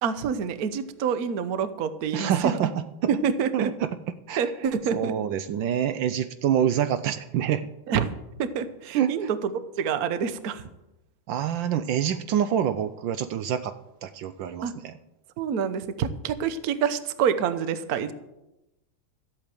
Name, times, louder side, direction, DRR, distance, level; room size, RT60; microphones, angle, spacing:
voice 1, 0.0-2.6 3.1-3.7 4.4-5.1 7.9-8.1 8.4-10.6 14.6-14.7 15.4-18.1, right 7 dB, 55° right, 12 dB, 1.2 m, -27 dB
voice 2, 2.1-2.7 3.0-3.1 3.5-3.9 4.3-4.5 4.9-7.7 8.9-9.3 11.3-13.7 14.0-14.9, right 9 dB, 75° right, 11 dB, 1.3 m, -26 dB
14.0 x 8.5 x 7.6 m, 0.93 s
omnidirectional pair, 2.2 m